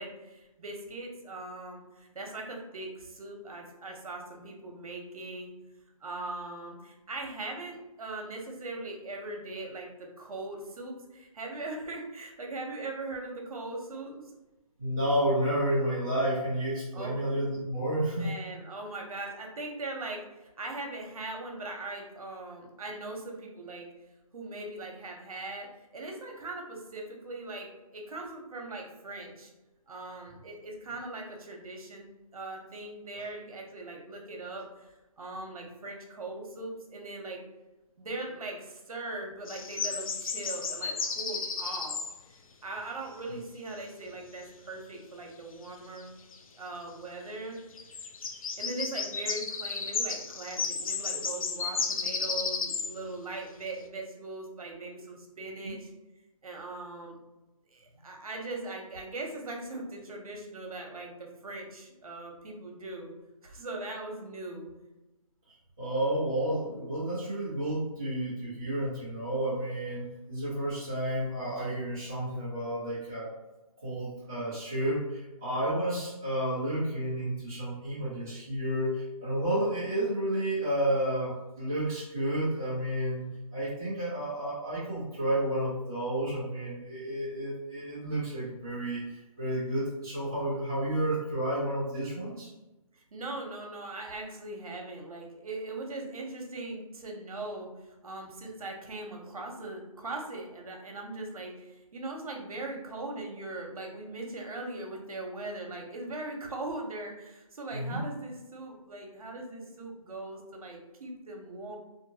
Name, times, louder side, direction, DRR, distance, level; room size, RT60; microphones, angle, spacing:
voice 1, 0.0-5.5 6.0-14.3 16.9-17.2 18.1-23.9 24.3-29.5 29.9-37.4 38.0-42.0 42.6-46.1 46.6-47.6 48.6-55.9 56.4-57.2 57.7-63.1 63.4-64.7 92.9-97.7 98.0-111.8, right 2 dB, 70° right, 1 dB, 0.8 m, -40 dB
voice 2, 14.8-18.3 43.3-43.4 55.6-55.7 65.5-73.3 73.8-83.2 83.5-92.5 107.7-108.0, right 1 dB, 5° right, -11 dB, 0.3 m, -31 dB
sound 1, 39.5-42.2 46.0-46.1 46.3-46.4 47.8-52.9, left 5 dB, 65° left, 0.4 m, -33 dB
2.6 x 2.6 x 2.7 m, 1.0 s
hypercardioid pair, 165°, 19 cm